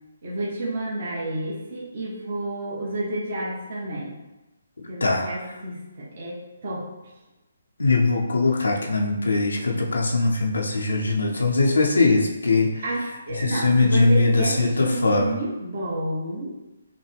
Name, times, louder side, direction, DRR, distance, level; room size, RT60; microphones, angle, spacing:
voice 1, 0.2-4.1 4.9-6.9 12.8-16.5, right 1 dB, 55° right, -4 dB, 1.1 m, -30 dB
voice 2, 7.8-12.7 13.6-14.3 14.6-15.3, left 3 dB, 90° left, 0 dB, 0.6 m, -21 dB
5.7 x 2.2 x 3.3 m, 1.0 s
hypercardioid pair, 150°, 0 cm